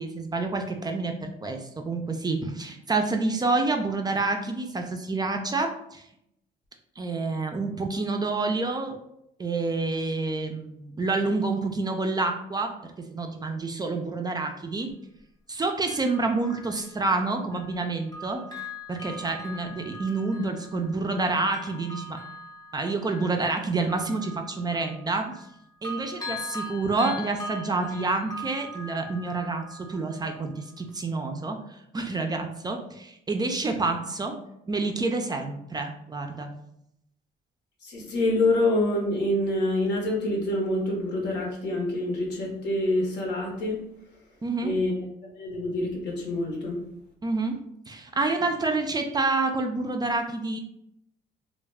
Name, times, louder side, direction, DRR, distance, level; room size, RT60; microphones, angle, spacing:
voice 1, 0.0-6.0 7.0-9.0 9.4-14.9 15.5-18.4 18.9-22.2 22.7-25.3 25.8-31.6 31.9-34.3 34.7-36.5 44.4-44.7 47.2-47.6 47.9-50.6, right 3 dB, 20° right, 4 dB, 0.3 m, -28 dB
Bell, 14.9-15.0 15.9-17.8 18.1-25.5 25.8-30.5 30.9-31.0, left 1 dB, 20° left, 0.6 m, -41 dB
voice 2, 37.8-43.8 44.6-44.9 45.2-46.8, left 1 dB, 75° left, -1 dB, 0.8 m, -26 dB
2.2 x 2.1 x 3.3 m, 0.78 s
cardioid pair, 85°, 18 cm